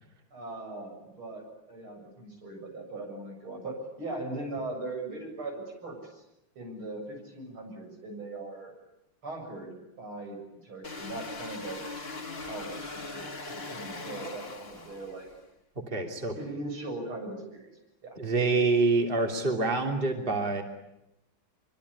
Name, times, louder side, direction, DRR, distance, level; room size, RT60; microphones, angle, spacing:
voice 1, 0.3-6.2 6.6-8.7 9.2-11.8 12.5-15.3 16.3-17.7 18.0-18.2, right 2 dB, 85° right, 2 dB, 8.2 m, -39 dB
sound 1, 10.8-15.4, left 3 dB, 30° left, 2.4 m, -40 dB
voice 2, 15.9-16.3 18.2-20.6, right 3 dB, 25° right, 3 dB, 3.1 m, -26 dB
25.0 x 24.0 x 9.8 m, 0.88 s
omnidirectional pair, 2.2 m